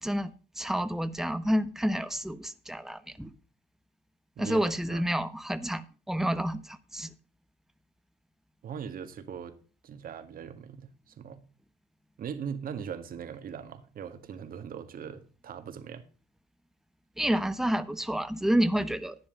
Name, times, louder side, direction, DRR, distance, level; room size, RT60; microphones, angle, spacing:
voice 1, 0.0-3.3 4.4-7.1 17.2-19.2, equal, ahead, 1.1 m, -29 dB
voice 2, 4.4-5.0 8.6-9.6 9.8-11.4 12.2-16.1, right 7 dB, 55° right, 1.9 m, -40 dB
11.5 x 9.9 x 3.9 m
supercardioid pair, 70°, 17 cm